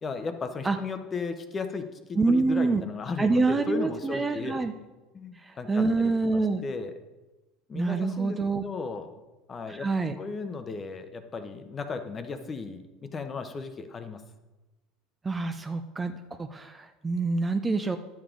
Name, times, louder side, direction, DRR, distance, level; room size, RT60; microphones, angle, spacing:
voice 1, 0.0-4.5 5.1-6.9 7.7-9.2 9.5-9.9 10.2-14.2, left 4 dB, 25° left, 8 dB, 0.9 m, -35 dB
voice 2, 2.2-2.8 3.2-4.7 5.4-6.6 7.7-8.6 9.7-10.2 15.2-18.0, right 3 dB, 15° right, 8 dB, 0.5 m, -26 dB
11.0 x 7.1 x 3.8 m, 1.1 s
supercardioid pair, 120°, 0 cm